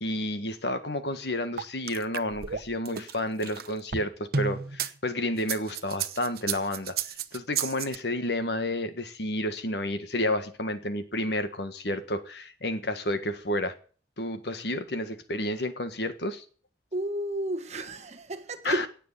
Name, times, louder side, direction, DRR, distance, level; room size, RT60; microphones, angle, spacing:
voice 1, 0.0-13.7 14.2-16.4 18.6-18.9, left 1 dB, 65° left, 1.6 m, -31 dB
sound 1, 1.6-4.9 5.4-8.0, right 6 dB, 55° right, 0.9 m, -32 dB
voice 2, 16.9-18.9, right 1 dB, 40° right, 1.5 m, -32 dB
17.5 x 6.7 x 8.3 m
head